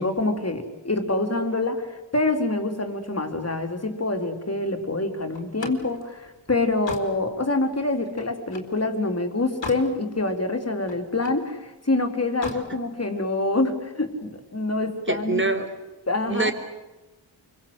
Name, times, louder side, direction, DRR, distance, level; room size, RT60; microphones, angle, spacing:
voice 1, 0.0-15.5 16.1-16.5, left 2 dB, 35° left, 5 dB, 4.0 m, -26 dB
Slam, 5.3-8.8 9.2-9.9 10.3-11.5 12.2-12.7, left 3 dB, 75° left, 4.1 m, -38 dB
voice 2, 15.1-15.7 16.3-16.5, right 3 dB, 25° right, 6 dB, 4.2 m, -24 dB
28.5 x 24.0 x 8.1 m, 1.1 s
wide cardioid pair, 70°, 44 cm